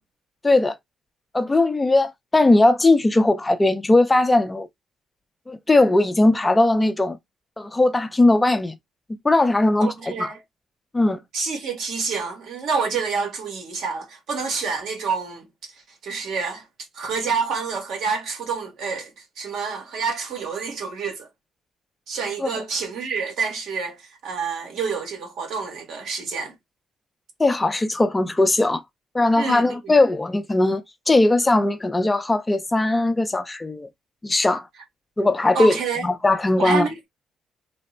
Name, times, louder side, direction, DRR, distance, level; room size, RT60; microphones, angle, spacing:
voice 1, 0.4-0.8 1.3-4.7 5.5-7.2 7.6-8.7 9.2-10.3 10.9-11.2 22.4-22.6 27.4-28.8 29.1-33.9 34.2-34.7 35.2-36.9, left 2 dB, 15° left, 0.5 m, -19 dB
voice 2, 9.8-10.3 11.3-15.5 15.7-16.6 16.9-19.1 19.4-21.3 22.1-26.5 29.3-29.9 35.5-36.1 36.6-37.0, right 5 dB, 75° right, 1.7 m, -28 dB
3.4 x 2.0 x 4.3 m
cardioid pair, 90°, 0 cm